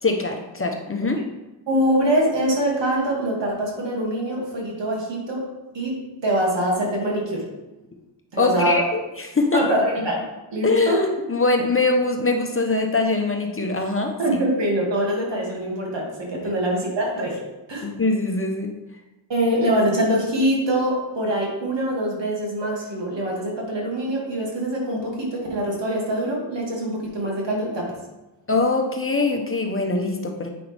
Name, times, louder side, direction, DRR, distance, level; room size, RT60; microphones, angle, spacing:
voice 1, 0.0-1.2 8.4-9.7 10.6-14.2 17.8-18.7 28.5-30.5, left 3 dB, 25° left, 3 dB, 1.1 m, -22 dB
voice 2, 1.7-5.5 5.7-7.5 8.3-8.8 9.5-10.2 10.5-11.0 14.2-17.4 17.7-17.9 19.3-28.0, right 1 dB, 65° right, -2 dB, 2.6 m, -24 dB
8.7 x 5.6 x 3.5 m, 1.0 s
cardioid pair, 55°, 47 cm